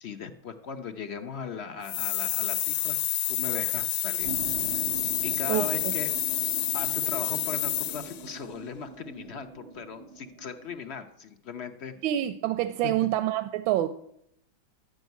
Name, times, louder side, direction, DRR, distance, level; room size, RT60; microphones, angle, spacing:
voice 1, 0.0-3.0 3.3-4.3 5.2-6.1 6.7-11.9 12.8-12.9, left 6 dB, 60° left, 8 dB, 0.7 m, -38 dB
sound 1, 1.8-8.3, left 14 dB, 80° left, 1.3 m, -29 dB
sound 2, 4.2-10.8, right 6 dB, 60° right, 0.7 m, -42 dB
voice 2, 5.5-5.9 12.0-13.9, right 13 dB, 85° right, 10 dB, 1.4 m, -27 dB
12.0 x 6.3 x 9.2 m, 0.76 s
omnidirectional pair, 2.1 m